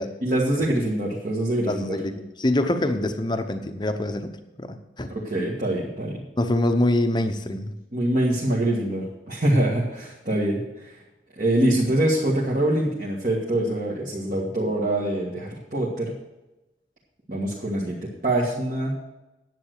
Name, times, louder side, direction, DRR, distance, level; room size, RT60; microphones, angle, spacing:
voice 1, 0.2-2.0 2.6-2.7 5.1-6.2 7.9-11.0 11.4-16.1 17.3-18.0 18.2-19.0, right 1 dB, 45° right, -4 dB, 1.7 m, -24 dB
voice 2, 1.7-4.3 4.6-5.1 6.4-7.7 14.3-14.5, left 1 dB, 25° left, 8 dB, 0.8 m, -25 dB
10.5 x 7.9 x 6.5 m, 1.0 s
head